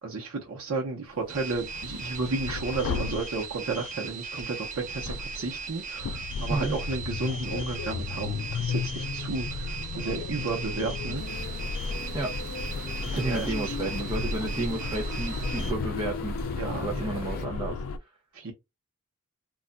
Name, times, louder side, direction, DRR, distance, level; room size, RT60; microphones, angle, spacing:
voice 1, 0.0-11.2 13.0-14.0 16.6-17.5 18.3-18.5, right 3 dB, 80° right, 0.8 m, -33 dB
sound 1, 1.2-3.9 4.6-18.0, left 4 dB, 85° left, 0.3 m, -34 dB
sound 2, 1.3-15.7, right 5 dB, 35° right, 0.9 m, -39 dB
sound 3, 11.1-17.5, left 1 dB, 45° left, 0.6 m, -40 dB
voice 2, 13.1-17.8, right 2 dB, 20° right, 0.5 m, -32 dB
2.4 x 2.2 x 3.7 m
head